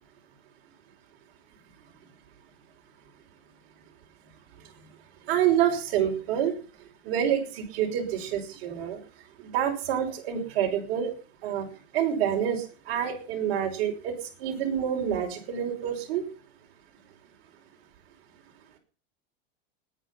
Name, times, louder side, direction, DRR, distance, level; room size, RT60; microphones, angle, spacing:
voice 1, 5.3-6.5 7.0-9.0 9.4-11.1 11.4-11.7 11.9-14.1 14.4-16.2, right 9 dB, 60° right, 1 dB, 5.6 m, -27 dB
19.5 x 10.0 x 6.0 m, 0.38 s
supercardioid pair, 140°, 30 cm